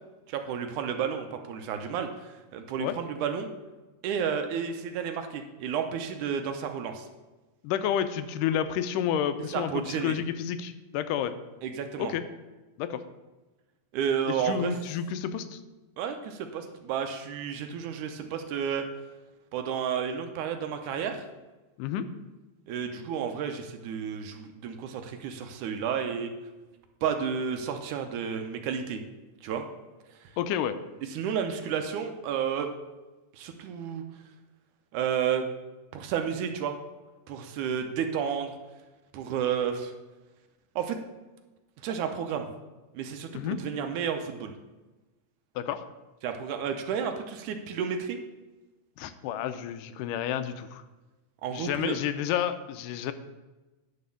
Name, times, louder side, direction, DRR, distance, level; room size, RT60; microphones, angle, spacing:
voice 1, 0.3-3.5 4.0-7.1 9.5-10.2 11.6-12.1 13.9-14.7 16.0-18.8 19.5-21.3 22.7-26.3 27.0-29.0 29.4-29.6 31.1-32.7 33.3-34.0 34.9-35.5 35.9-36.8 37.3-38.5 39.1-39.9 40.8-41.0 41.8-42.5 42.9-44.5 46.2-48.2 51.4-52.0, right 7 dB, 80° right, 6 dB, 2.1 m, -31 dB
voice 2, 7.6-11.3 12.0-12.2 12.8-13.0 14.5-15.6 21.8-22.1 30.4-30.7 43.3-43.6 45.6-45.8 49.0-50.8 51.5-53.1, left 9 dB, 85° left, 11 dB, 2.2 m, -30 dB
10.5 x 4.2 x 7.0 m, 1.1 s
omnidirectional pair, 3.7 m